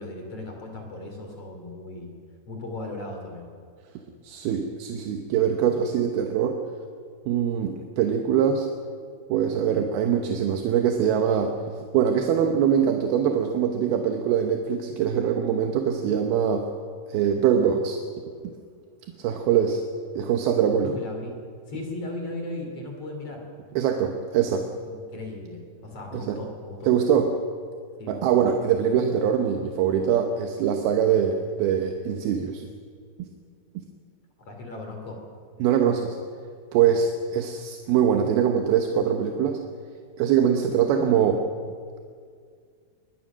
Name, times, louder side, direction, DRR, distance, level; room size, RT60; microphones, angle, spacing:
voice 1, 0.0-2.1 2.5-3.5 20.8-21.4 21.7-23.4 24.9-26.9 28.0-28.3 34.4-35.2 36.8-37.0, left 2 dB, 35° left, 3 dB, 3.6 m, -37 dB
voice 2, 4.2-6.6 7.3-8.7 9.3-11.6 11.9-16.7 17.1-18.0 19.2-19.8 20.2-21.0 23.8-24.7 26.1-26.4 26.9-27.3 28.1-32.7 35.6-36.2 36.7-39.6 40.2-41.4, right 8 dB, 70° right, 4 dB, 2.6 m, -23 dB
24.5 x 20.0 x 6.3 m, 2.1 s
omnidirectional pair, 5.2 m